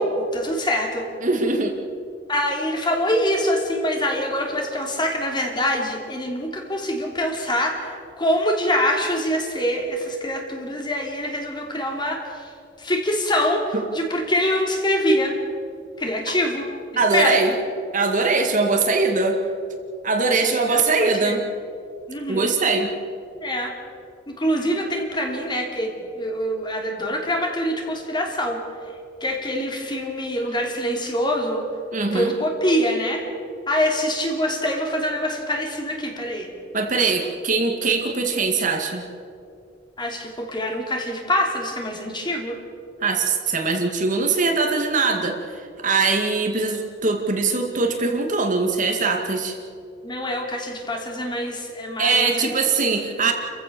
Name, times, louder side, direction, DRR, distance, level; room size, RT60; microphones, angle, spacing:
voice 1, 0.0-1.1 2.3-12.5 12.8-15.4 16.0-16.7 17.1-17.4 20.3-21.4 22.1-22.5 23.4-23.7 24.3-28.6 29.2-31.6 32.1-33.3 33.7-36.5 40.0-42.6 50.0-52.9, equal, 25° left, 2 dB, 3.0 m, -25 dB
voice 2, 1.2-1.8 13.7-13.8 17.0-17.5 17.9-19.4 20.0-21.4 22.3-22.9 31.9-32.3 36.7-39.0 43.0-49.6 52.0-53.3, right 3 dB, 45° right, 3 dB, 2.2 m, -21 dB
29.5 x 15.0 x 7.0 m, 2.4 s
head